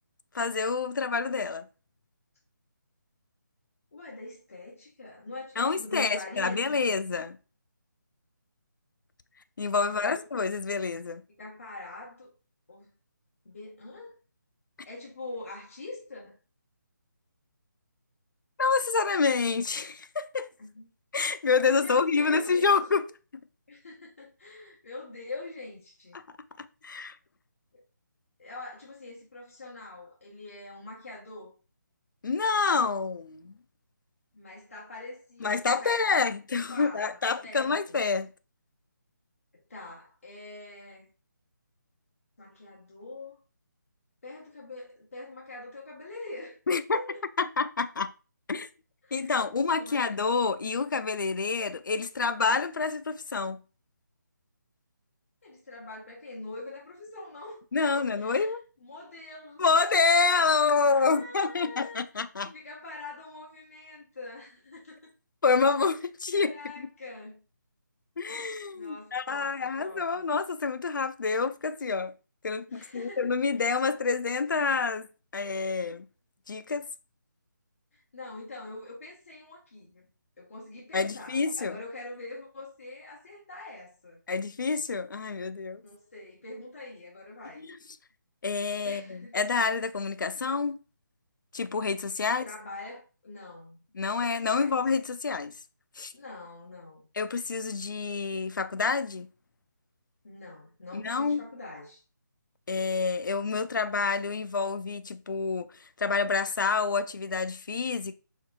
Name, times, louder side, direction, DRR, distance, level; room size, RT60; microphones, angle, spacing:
voice 1, 0.3-1.7 5.6-7.4 9.6-11.2 18.6-20.5 21.1-23.0 26.1-26.2 26.6-27.2 32.2-33.6 35.4-38.3 46.7-47.0 47.4-48.1 48.5-48.7 49.1-53.6 57.7-58.6 59.6-62.5 65.4-66.9 68.2-72.1 72.4-75.1 75.3-76.0 76.5-76.9 80.9-81.8 84.3-85.8 87.6-87.8 88.4-90.8 91.5-92.4 94.0-95.5 96.0-96.1 97.2-99.3 100.9-101.4 102.7-105.7 106.0-108.1, left 4 dB, 75° left, 0.4 m, -27 dB
voice 2, 3.9-6.9 9.8-10.2 11.4-12.3 12.7-12.9 13.4-14.2 14.8-16.4 20.6-20.9 21.6-22.7 23.7-26.2 27.7-27.8 28.4-31.5 34.3-36.3 36.7-38.0 39.5-41.1 42.4-43.3 44.2-46.6 46.9-47.2 49.0-50.2 55.4-57.6 57.9-59.6 60.9-65.1 65.5-66.0 66.3-67.4 68.7-70.3 72.7-73.6 77.9-80.1 80.4-84.2 85.8-87.7 88.8-89.3 92.3-94.2 94.4-94.8 96.1-97.1 100.2-102.0, left 2 dB, 45° left, 1.1 m, -44 dB
4.5 x 3.6 x 2.3 m
hypercardioid pair, 175°, 10 cm